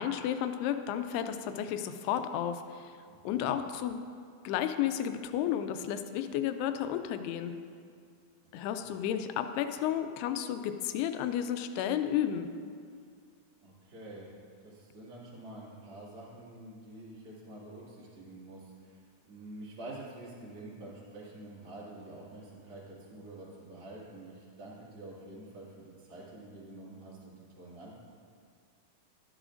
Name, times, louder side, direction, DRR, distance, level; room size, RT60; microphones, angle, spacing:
voice 1, 0.0-2.9 3.2-4.0 4.4-7.5 8.5-12.5, left 10 dB, 85° left, 9 dB, 2.5 m, -32 dB
voice 2, 3.1-3.5 8.5-8.9 13.6-14.3 14.6-28.1, right 2 dB, 40° right, -7 dB, 2.2 m, -48 dB
12.5 x 9.9 x 2.5 m, 2.2 s
omnidirectional pair, 4.5 m